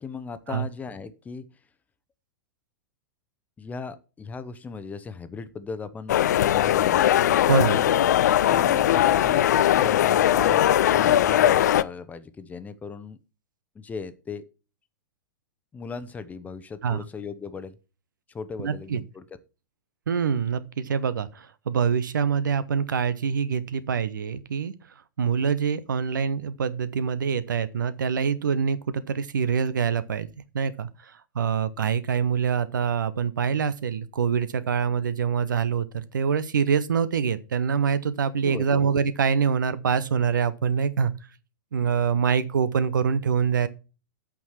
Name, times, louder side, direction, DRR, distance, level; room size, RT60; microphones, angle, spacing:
voice 1, 0.0-1.4 3.6-6.2 6.4-7.0 7.7-8.2 8.5-10.6 10.9-13.2 13.7-14.4 15.7-17.8 18.3-19.2 38.4-38.8, left 5 dB, 15° left, 0.9 m, -37 dB
sound 1, 6.1-11.8, left 11 dB, 55° left, 0.5 m, -20 dB
voice 2, 7.5-7.8 16.8-17.0 18.6-19.0 20.1-24.7 25.2-30.3 30.5-41.1 41.7-43.7, right 6 dB, 65° right, 0.9 m, -25 dB
8.4 x 6.3 x 7.3 m
figure-of-eight pair, 100°, 11 cm